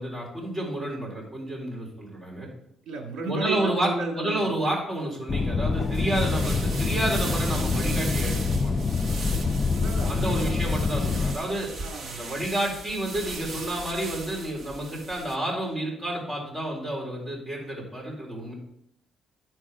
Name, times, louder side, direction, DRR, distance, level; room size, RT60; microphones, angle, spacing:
voice 1, 0.0-2.5 3.2-8.7 10.1-11.7 12.1-18.5, right 1 dB, 20° right, -3 dB, 3.8 m, -30 dB
voice 2, 2.8-4.5 9.8-10.7 11.8-12.3, right 3 dB, 75° right, 1 dB, 2.2 m, -34 dB
sound 1, 5.3-11.4, left 4 dB, 35° left, 0.4 m, -26 dB
sound 2, 5.8-15.4, right 3 dB, 45° right, 1.2 m, -37 dB
11.5 x 4.6 x 5.0 m, 0.73 s
cardioid pair, 115°, 0 cm